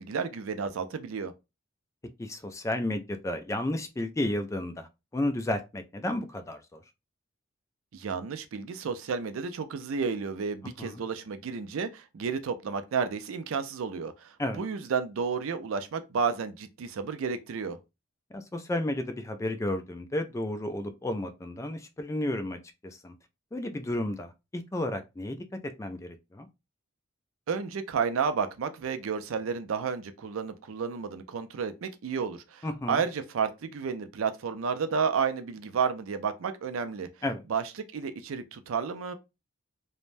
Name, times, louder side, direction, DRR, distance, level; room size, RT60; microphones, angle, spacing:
voice 1, 0.0-1.3 7.9-17.8 27.5-37.1 37.5-37.6 37.9-39.1, right 6 dB, 80° right, 0.4 m, -31 dB
voice 2, 2.2-6.8 10.8-11.0 14.4-14.6 18.3-23.1 23.5-25.4 25.8-26.5 32.6-33.1 37.2-37.4, left 1 dB, 15° left, 0.3 m, -32 dB
3.2 x 2.1 x 2.5 m
head